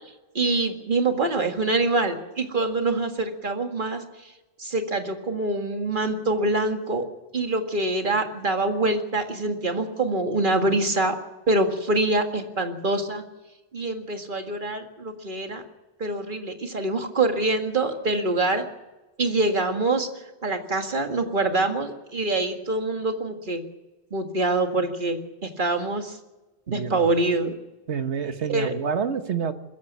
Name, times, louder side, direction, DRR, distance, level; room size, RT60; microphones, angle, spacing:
voice 1, 0.3-4.0 4.6-7.0 7.3-11.2 11.5-13.2 13.7-15.6 16.0-18.6 19.2-20.1 20.4-23.6 24.1-26.2 26.7-27.5 28.5-28.8, right 2 dB, 50° right, 5 dB, 2.1 m, -25 dB
voice 2, 26.7-27.1 27.9-29.5, right 6 dB, 90° right, 9 dB, 1.6 m, -28 dB
21.5 x 14.5 x 8.4 m, 1.1 s
omnidirectional pair, 1.1 m